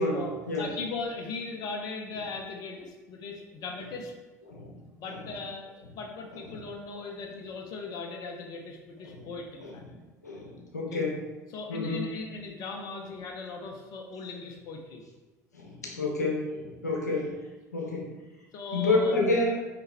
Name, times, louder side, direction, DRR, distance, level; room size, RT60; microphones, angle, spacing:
voice 1, 0.0-0.7 4.5-4.8 5.1-5.2 6.5-6.6 9.0-9.3 9.6-9.8 10.2-11.2 11.7-12.1 15.5-17.4 17.7-18.2 18.7-19.6, left 2 dB, 80° left, -1 dB, 1.0 m, -29 dB
voice 2, 0.6-4.1 5.0-5.7 5.9-9.8 10.9-11.0 11.5-15.0 18.5-19.2, left 4 dB, 50° left, 2 dB, 0.8 m, -38 dB
5.6 x 5.1 x 3.4 m, 1.2 s
figure-of-eight pair, 60°, 9 cm